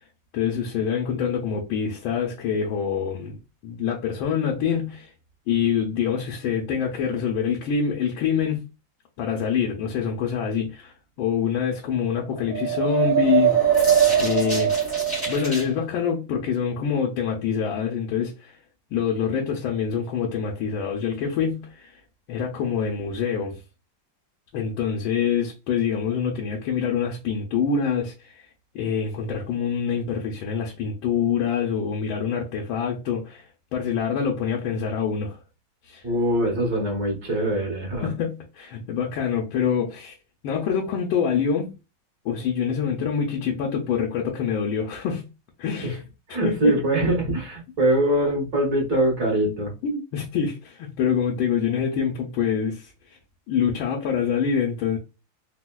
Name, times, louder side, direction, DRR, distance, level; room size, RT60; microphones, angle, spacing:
voice 1, 0.3-3.4 3.6-5.1 5.5-8.6 9.2-10.9 11.2-13.5 14.2-14.9 15.3-18.6 18.9-22.0 22.3-23.6 24.5-28.5 28.7-33.5 33.7-35.4 35.9-36.0 38.0-40.2 40.4-41.7 42.2-45.3 45.6-46.0 46.4-46.8 49.8-52.9 53.5-55.0, left 7 dB, 75° left, 1.4 m, -25 dB
sound 1, 12.3-15.7, right 8 dB, 10° right, 1.0 m, -21 dB
voice 2, 36.0-38.1 45.8-46.0 46.3-49.7, right 1 dB, 45° right, 1.8 m, -23 dB
4.1 x 2.3 x 2.2 m
omnidirectional pair, 2.4 m